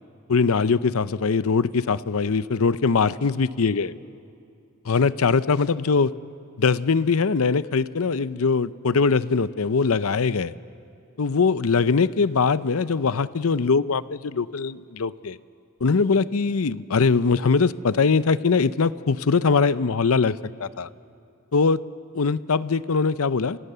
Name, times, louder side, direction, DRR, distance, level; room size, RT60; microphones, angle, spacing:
voice 1, 0.3-3.9 4.9-6.1 6.6-10.5 11.2-15.4 15.8-20.3 20.6-20.9 21.5-21.8 22.1-23.6, left 4 dB, 70° left, 15 dB, 0.6 m, -22 dB
29.5 x 26.0 x 6.8 m, 2.5 s
head